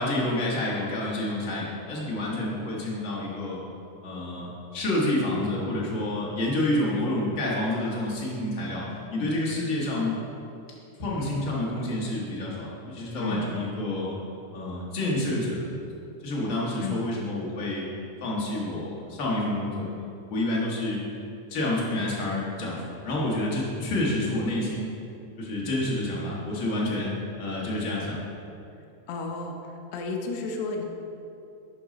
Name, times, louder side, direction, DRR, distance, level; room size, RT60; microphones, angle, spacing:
voice 1, 0.0-3.6 4.0-8.8 9.1-10.2 11.0-14.1 14.5-15.6 16.2-17.8 18.2-19.9 20.3-21.0 21.5-24.9 25.4-27.1 27.4-28.2, left 1 dB, 55° left, -5 dB, 0.8 m, -28 dB
voice 2, 29.1-29.6 29.9-30.8, left 4 dB, 85° left, 2 dB, 1.3 m, -32 dB
8.4 x 5.4 x 3.8 m, 2.7 s
omnidirectional pair, 3.5 m